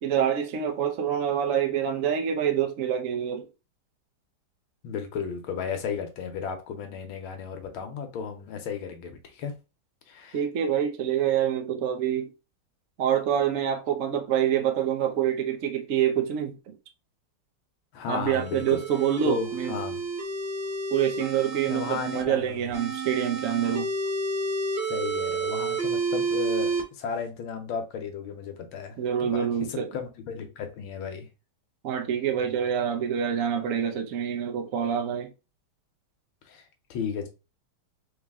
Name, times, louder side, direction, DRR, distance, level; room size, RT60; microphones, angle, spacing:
voice 1, 0.0-3.5 10.3-12.3 13.0-16.7 18.1-19.7 20.9-23.9 29.0-29.9 31.8-35.3, right 9 dB, 60° right, 0.8 m, -26 dB
voice 2, 4.8-9.5 10.1-10.4 17.9-18.8 19.2-20.0 21.7-22.7 24.9-31.3 36.4-36.6 36.9-37.3, left 6 dB, 80° left, 1.6 m, -34 dB
sound 1, 18.3-22.2 22.7-26.8, right 3 dB, 25° right, 1.5 m, -30 dB
3.9 x 3.2 x 3.6 m
omnidirectional pair, 2.3 m